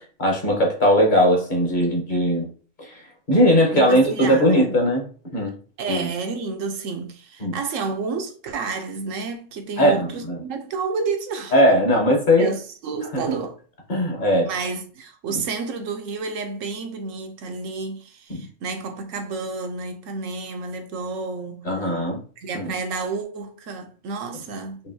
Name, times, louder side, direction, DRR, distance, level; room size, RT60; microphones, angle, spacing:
voice 1, 0.2-2.5 2.8-5.0 5.3-5.5 5.9-6.1 7.4-7.6 9.8-10.4 11.5-12.5 13.1-13.2 13.9-14.5 18.3-18.4 21.6-22.2 22.5-22.7, equal, 40° left, 1.1 m, -19 dB
voice 2, 3.7-4.7 5.8-11.5 12.4-13.6 14.5-21.9 22.4-24.8, right 4 dB, 80° right, 1.1 m, -30 dB
5.3 x 2.6 x 2.7 m
omnidirectional pair, 1.3 m